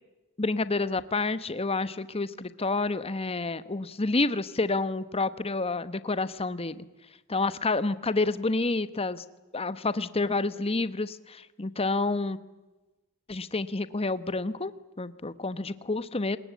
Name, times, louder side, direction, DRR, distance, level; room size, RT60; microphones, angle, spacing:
voice 1, 0.4-6.8 7.3-9.2 9.5-12.4 13.3-14.7 15.0-16.4, left 3 dB, 25° left, 14 dB, 1.0 m, -29 dB
26.0 x 21.0 x 8.3 m, 1.1 s
head